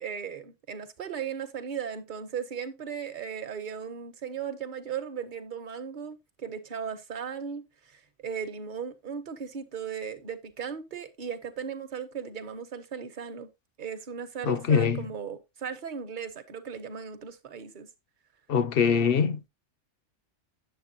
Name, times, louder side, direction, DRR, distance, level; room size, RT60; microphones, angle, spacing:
voice 1, 0.0-7.6 7.9-13.5 13.8-17.9, right 7 dB, 45° right, 1.0 m, -37 dB
voice 2, 14.4-15.1 18.5-19.5, left 6 dB, 55° left, 0.8 m, -23 dB
8.9 x 7.2 x 2.7 m
omnidirectional pair, 1.3 m